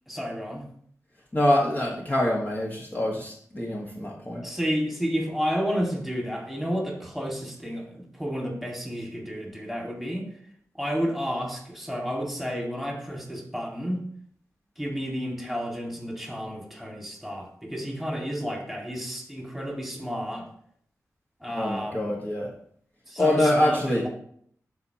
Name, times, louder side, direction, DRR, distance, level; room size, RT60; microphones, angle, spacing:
voice 1, 0.1-0.7 4.4-10.3 10.7-14.1 14.8-20.5 21.4-22.1 23.1-24.1, equal, ahead, -1 dB, 2.2 m, -31 dB
voice 2, 1.3-4.4 21.5-22.5 23.2-24.0, left 1 dB, 30° left, -3 dB, 1.5 m, -25 dB
12.0 x 4.3 x 3.0 m, 0.62 s
cardioid pair, 65°, 6 cm